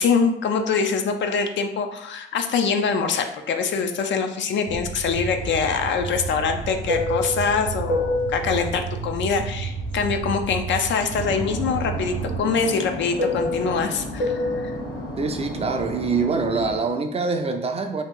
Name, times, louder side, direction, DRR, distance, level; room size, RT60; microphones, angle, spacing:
voice 1, 0.0-14.7, left 5 dB, 60° left, 5 dB, 0.5 m, -24 dB
sound 1, 4.7-12.4, right 5 dB, 70° right, 0.7 m, -32 dB
Fixed-wing aircraft airplane, 5.3-10.7 11.0-16.8, left 2 dB, 85° left, 1.0 m, -29 dB
voice 2, 15.2-18.0, right 4 dB, 30° right, 5 dB, 0.4 m, -24 dB
2.8 x 2.4 x 3.6 m, 0.81 s
supercardioid pair, 75°, 21 cm